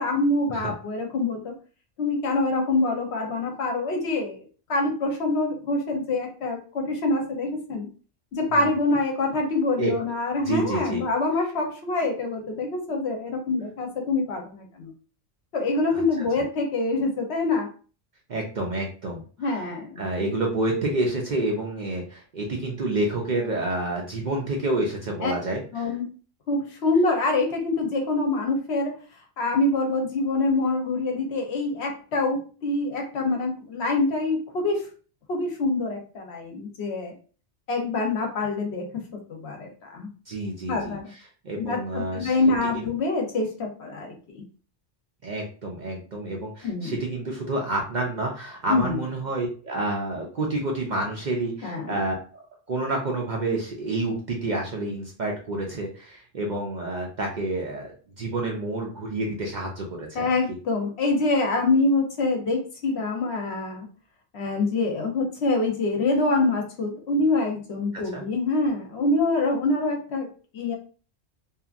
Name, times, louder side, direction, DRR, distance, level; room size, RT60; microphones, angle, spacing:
voice 1, 0.0-1.5 2.0-4.4 4.7-7.9 8.3-14.9 15.5-17.7 19.4-20.0 25.2-25.3 25.7-26.0 26.5-28.9 29.4-34.8 35.3-37.1 37.7-38.9 39.1-40.1 40.7-41.1 41.6-44.4 46.6-47.0 48.7-49.0 51.6-51.9 60.1-63.9 64.3-70.3 70.5-70.8, left 2 dB, 70° left, 2 dB, 1.0 m, -25 dB
voice 2, 10.4-11.0 15.9-16.3 18.3-19.7 20.0-25.9 40.3-41.2 41.4-42.4 42.7-42.8 45.2-52.4 52.7-60.6 67.9-68.2, right 2 dB, 50° right, 0 dB, 0.6 m, -29 dB
2.8 x 2.4 x 2.4 m, 0.38 s
omnidirectional pair, 1.2 m